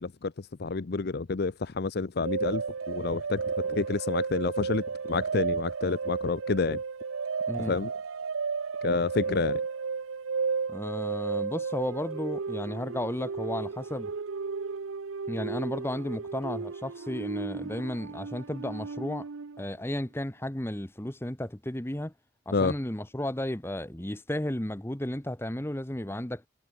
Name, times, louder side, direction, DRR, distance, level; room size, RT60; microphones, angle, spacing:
voice 1, 0.0-6.8 7.7-7.9 8.8-9.6 22.5-22.7, left 4 dB, 50° left, 0.6 m, -29 dB
sound 1, 2.2-19.7, right 5 dB, 90° right, 0.7 m, -33 dB
voice 2, 10.7-14.1 15.3-19.3 19.6-22.1 22.5-26.4, left 1 dB, 10° left, 1.0 m, -33 dB
head